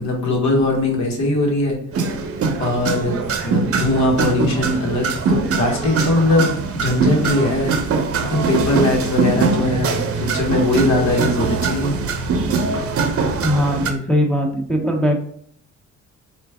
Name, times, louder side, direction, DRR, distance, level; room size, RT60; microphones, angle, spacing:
voice 1, 0.0-1.8 2.6-3.2 3.4-7.7 8.3-11.9, left 2 dB, 65° left, 1 dB, 1.2 m, -20 dB
sound 1, 1.9-13.9, right 4 dB, 50° right, 0.7 m, -22 dB
voice 2, 13.4-15.2, equal, 5° left, 0 dB, 0.7 m, -19 dB
4.5 x 2.5 x 3.4 m, 0.64 s
cardioid pair, 90°, 30 cm